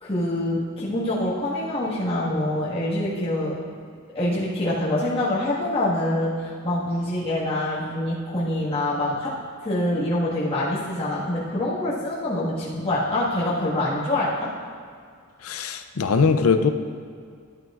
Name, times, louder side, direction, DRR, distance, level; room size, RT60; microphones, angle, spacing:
voice 1, 0.0-3.6 4.1-9.3 9.6-14.5, left 1 dB, 25° left, -9 dB, 1.7 m, -25 dB
voice 2, 15.4-16.7, left 5 dB, 80° left, 8 dB, 0.5 m, -21 dB
12.0 x 9.2 x 2.5 m, 2.1 s
head